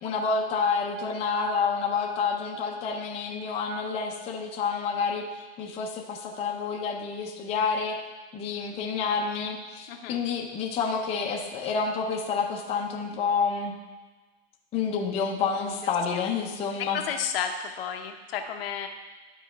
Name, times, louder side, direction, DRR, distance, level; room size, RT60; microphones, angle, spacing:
voice 1, 0.0-5.3 5.6-8.0 8.3-13.8 14.7-17.0, left 5 dB, 20° left, -1 dB, 0.7 m, -29 dB
voice 2, 9.9-10.2 15.4-15.7 16.1-16.2 16.8-18.9, left 7 dB, 60° left, 5 dB, 0.9 m, -32 dB
11.5 x 4.1 x 3.4 m, 1.3 s
supercardioid pair, 150°, 33 cm